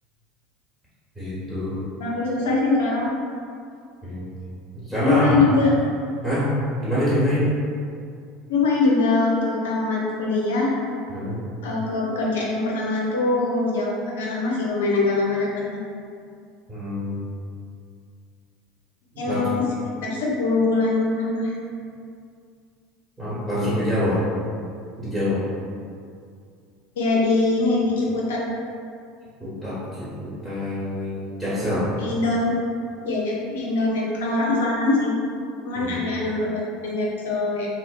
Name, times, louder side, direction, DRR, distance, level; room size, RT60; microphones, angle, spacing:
voice 1, 1.1-1.8 4.0-4.3 4.7-5.4 6.2-6.5 6.8-7.4 11.1-11.4 16.7-17.3 19.2-19.5 23.2-24.2 25.0-25.4 29.4-31.9 35.7-36.0, equal, ahead, -12 dB, 1.2 m, -25 dB
voice 2, 2.0-3.1 5.0-5.7 8.5-10.7 11.0-11.1 11.6-15.5 19.2-19.6 20.0-21.5 27.0-28.4 32.0-32.5 33.0-35.2 35.6-37.7, left 3 dB, 80° left, -3 dB, 0.5 m, -23 dB
2.6 x 2.1 x 2.4 m, 2.3 s
hypercardioid pair, 85°, 0 cm